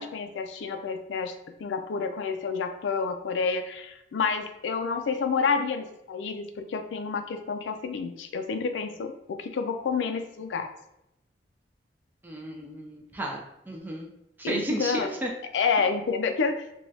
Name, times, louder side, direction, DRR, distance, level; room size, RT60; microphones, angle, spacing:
voice 1, 0.0-1.3 1.6-10.7 14.4-15.1 15.5-16.7, left 5 dB, 85° left, 7 dB, 0.3 m, -29 dB
voice 2, 12.2-14.1 14.4-15.3, right 1 dB, 10° right, 0 dB, 0.3 m, -33 dB
3.1 x 2.3 x 2.6 m, 0.85 s
head